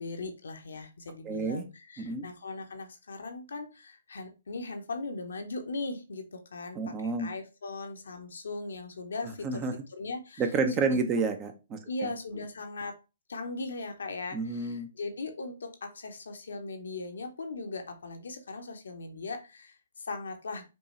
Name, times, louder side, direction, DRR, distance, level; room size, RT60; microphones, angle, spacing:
voice 1, 0.0-9.6 9.9-10.4 11.9-13.0 13.3-20.7, left 3 dB, 75° left, 0.8 m, -39 dB
voice 2, 1.2-1.7 2.0-2.3 6.7-7.3 9.4-9.7 10.4-12.1 14.3-14.9, right 4 dB, 25° right, 0.6 m, -30 dB
5.3 x 2.3 x 3.0 m
figure-of-eight pair, 130°, 0 cm